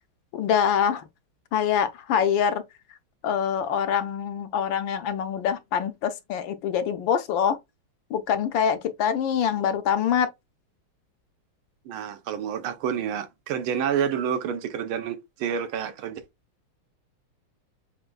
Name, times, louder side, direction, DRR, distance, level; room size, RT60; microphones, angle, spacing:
voice 1, 0.3-1.0 1.5-2.6 3.2-7.6 8.1-10.3, left 8 dB, 75° left, 1.2 m, -24 dB
voice 2, 11.9-16.2, right 8 dB, 85° right, 1.6 m, -29 dB
7.5 x 2.6 x 2.3 m
omnidirectional pair, 2.3 m